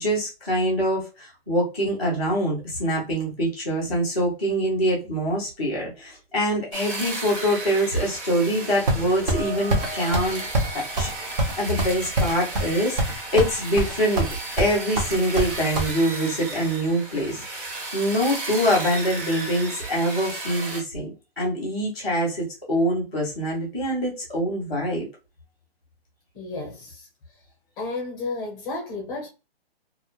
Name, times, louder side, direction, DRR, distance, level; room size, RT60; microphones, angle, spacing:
voice 1, 0.0-10.4 10.7-14.3 14.6-25.1, equal, 5° right, 0.4 m, -25 dB
sound 1, 6.7-20.8, right 2 dB, 55° right, 1.1 m, -34 dB
sound 2, 8.5-12.4, right 1 dB, 75° right, 1.1 m, -40 dB
sound 3, 8.9-9.4 9.7-9.9 10.1-10.3 10.5-10.7 11.0-11.1 11.4-12.7 13.0-13.5 13.8-14.3 14.6-15.9, right 1 dB, 40° right, 0.9 m, -23 dB
voice 2, 26.3-27.1 27.8-29.3, left 3 dB, 10° left, 0.8 m, -32 dB
2.4 x 2.1 x 2.9 m
hypercardioid pair, 165°, 31 cm